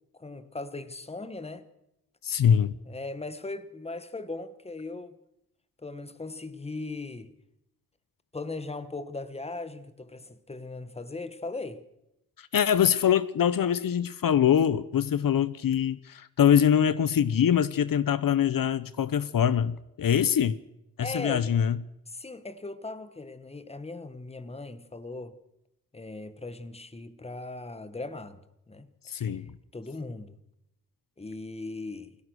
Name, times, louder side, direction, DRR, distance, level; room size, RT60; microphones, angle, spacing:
voice 1, 0.0-1.7 2.8-5.2 5.8-7.3 8.3-11.8 21.0-21.5 22.1-25.4 25.9-28.9 29.1-30.4 31.2-32.2, left 3 dB, 15° left, 1.4 m, -39 dB
voice 2, 2.2-2.8 12.4-20.6 21.0-21.8 29.1-29.5, left 9 dB, 70° left, 0.9 m, -24 dB
28.0 x 17.5 x 6.4 m
wide cardioid pair, 160°, 35 cm